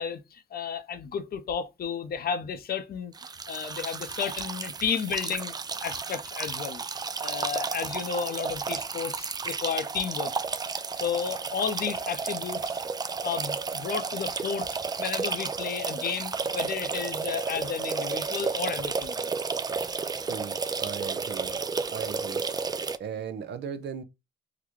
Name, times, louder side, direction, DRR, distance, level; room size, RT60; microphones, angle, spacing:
voice 1, 0.0-3.1 3.5-5.5 5.8-6.8 7.2-10.3 11.0-12.8 13.2-19.3, left 7 dB, 50° left, 0.6 m, -32 dB
sound 1, 3.1-23.0, right 5 dB, 20° right, 0.3 m, -32 dB
voice 2, 20.2-21.5 21.9-22.4 23.0-24.0, right 7 dB, 60° right, 0.7 m, -37 dB
3.9 x 2.1 x 3.1 m
cardioid pair, 90°, 20 cm